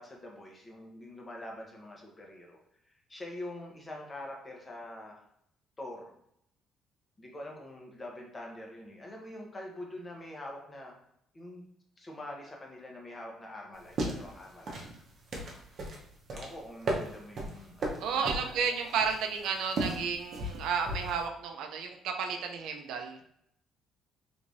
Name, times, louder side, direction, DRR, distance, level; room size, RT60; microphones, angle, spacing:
voice 1, 0.0-2.6 3.1-5.2 5.8-6.1 7.2-11.0 11.3-11.6 12.0-14.8 16.3-18.7, left 1 dB, 20° left, 0 dB, 0.9 m, -45 dB
sound 1, 13.7-21.2, right 1 dB, 50° right, 0.8 m, -37 dB
voice 2, 18.0-23.2, right 6 dB, 80° right, 4 dB, 0.5 m, -32 dB
3.4 x 3.2 x 2.6 m, 0.72 s
cardioid pair, 120°, 0 cm